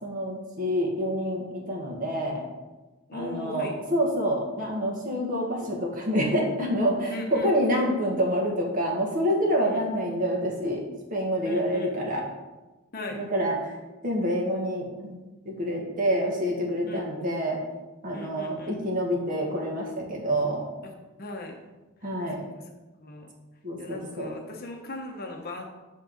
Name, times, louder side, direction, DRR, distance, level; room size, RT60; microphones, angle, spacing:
voice 1, 0.0-2.4 3.1-10.8 11.1-12.2 13.1-13.7 14.0-15.2 15.4-17.6 18.0-20.6 22.0-22.4 23.6-24.3, equal, 40° right, -1 dB, 1.8 m, -27 dB
voice 2, 3.1-3.8 7.1-7.5 9.6-9.8 11.4-12.1 12.9-13.2 16.8-17.1 18.1-18.8 20.8-20.9 21.2-21.6 22.5-22.6 23.0-23.3 23.8-25.7, left 2 dB, 45° left, 3 dB, 0.9 m, -38 dB
8.9 x 3.7 x 6.5 m, 1.2 s
head